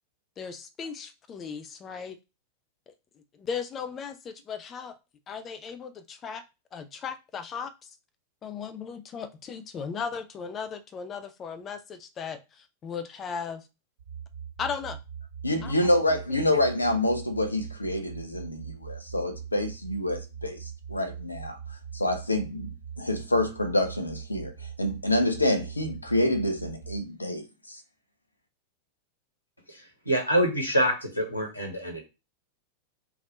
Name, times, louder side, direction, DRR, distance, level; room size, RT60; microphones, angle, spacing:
voice 1, 0.4-2.2 3.3-4.9 5.3-6.4 6.7-7.9 8.4-13.6 14.6-15.0 15.6-15.8 16.1-16.6, left 6 dB, 25° left, 0.5 m, -37 dB
sound 1, 14.0-27.0, right 7 dB, 45° right, 1.6 m, -41 dB
voice 2, 15.4-21.6 21.9-24.5 24.8-27.8, left 1 dB, 80° left, 0.6 m, -27 dB
voice 3, 29.7-32.0, right 1 dB, 85° right, 0.8 m, -26 dB
3.4 x 2.4 x 4.1 m
figure-of-eight pair, 90°, 0 cm